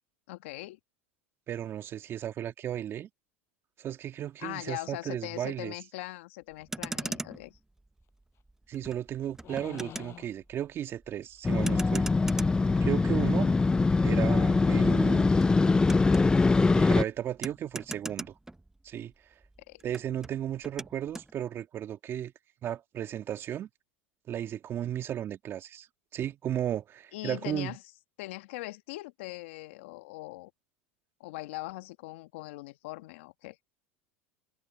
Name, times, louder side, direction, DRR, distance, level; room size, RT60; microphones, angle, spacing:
voice 1, 0.3-0.8 4.4-7.6 19.7-19.8 27.1-27.8 28.2-30.5 31.2-33.6, left 20 dB, 70° left, 1.6 m, -41 dB
voice 2, 1.5-3.1 3.8-5.7 8.7-12.1 12.8-13.5 14.0-15.4 16.7-18.3 18.8-19.1 19.8-22.3 22.6-23.7 24.3-25.9 26.1-27.8, right 10 dB, 40° right, 2.0 m, -34 dB
Motor vehicle (road), 6.5-19.1 19.4-21.3, right 2 dB, 5° right, 0.9 m, -42 dB
sound 1, 8.4-8.5 9.4-10.4 11.5-11.9 12.9-13.1 13.3-13.7 14.2-14.3, left 12 dB, 40° left, 7.5 m, -48 dB
Motorcycle, 11.4-17.0, left 3 dB, 10° left, 0.4 m, -23 dB
hypercardioid pair, 105°, 7 cm